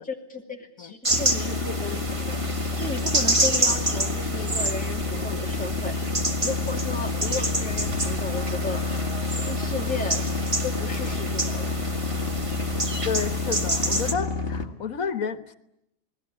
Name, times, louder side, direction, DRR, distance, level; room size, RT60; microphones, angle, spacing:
voice 1, 0.0-2.4 2.8-6.0 6.4-8.8 9.4-10.3 10.6-11.8, left 3 dB, 5° left, 1 dB, 2.5 m, -34 dB
sound 1, 1.0-14.1, right 1 dB, 25° right, 1.8 m, -29 dB
sound 2, 1.1-14.7, left 3 dB, 45° left, 2.2 m, -29 dB
sound 3, 6.1-13.5, right 3 dB, 50° right, 4.5 m, -47 dB
voice 2, 13.0-15.6, left 6 dB, 80° left, 11 dB, 1.8 m, -30 dB
29.0 x 20.0 x 9.9 m, 0.83 s
omnidirectional pair, 1.4 m